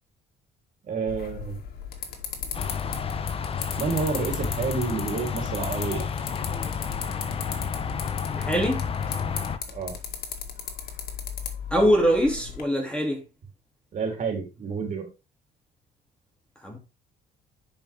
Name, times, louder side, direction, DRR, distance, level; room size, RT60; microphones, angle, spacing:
voice 1, 0.8-1.6 3.8-6.0 9.7-9.9 13.9-15.1, right 4 dB, 50° right, 3.1 m, -29 dB
sound 1, 1.1-12.6, left 7 dB, 65° left, 2.0 m, -37 dB
sound 2, 2.5-9.6, left 6 dB, 35° left, 0.8 m, -31 dB
voice 2, 8.3-8.9 11.7-13.2 16.6-16.8, equal, 5° left, 2.5 m, -23 dB
10.0 x 5.2 x 3.4 m
cardioid pair, 110°, 17 cm